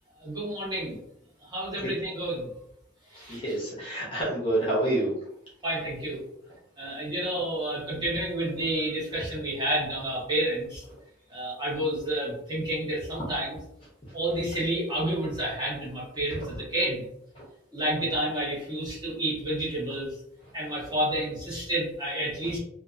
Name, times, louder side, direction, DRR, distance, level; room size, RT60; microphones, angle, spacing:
voice 1, 0.2-1.0 1.4-2.5 3.1-3.4 5.6-6.2 6.8-10.8 11.3-13.6 14.1-17.1 17.7-20.1 20.5-22.6, right 1 dB, 20° right, -7 dB, 1.0 m, -30 dB
voice 2, 3.1-5.1 14.1-14.2, right 1 dB, 25° left, -5 dB, 0.8 m, -28 dB
2.6 x 2.3 x 2.5 m, 0.77 s
head